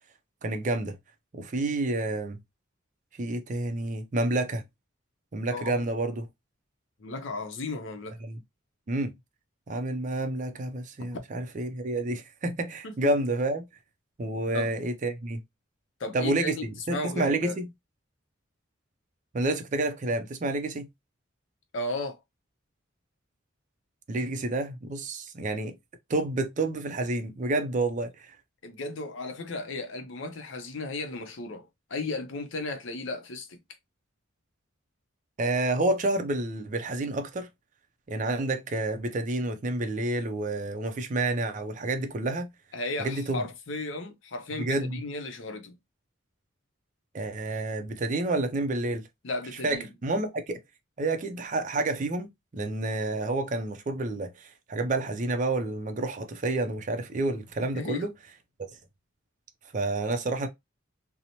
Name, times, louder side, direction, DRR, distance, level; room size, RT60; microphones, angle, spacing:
voice 1, 0.4-1.0 1.3-2.4 3.2-4.6 5.3-6.3 8.2-8.4 8.9-9.1 9.7-13.7 14.2-15.4 16.1-17.7 19.3-20.9 24.1-25.8 26.1-28.4 35.4-37.5 38.1-42.5 43.0-43.4 44.6-45.0 47.1-49.1 49.6-50.6 51.0-58.1 59.7-60.5, right 2 dB, 40° right, 0.4 m, -29 dB
voice 2, 5.5-5.8 7.0-8.2 12.8-13.1 14.5-14.7 16.0-17.6 21.7-22.2 28.6-33.6 42.7-45.8 49.2-49.9 57.7-58.1, left 2 dB, 65° left, 0.6 m, -35 dB
2.9 x 2.0 x 2.7 m
head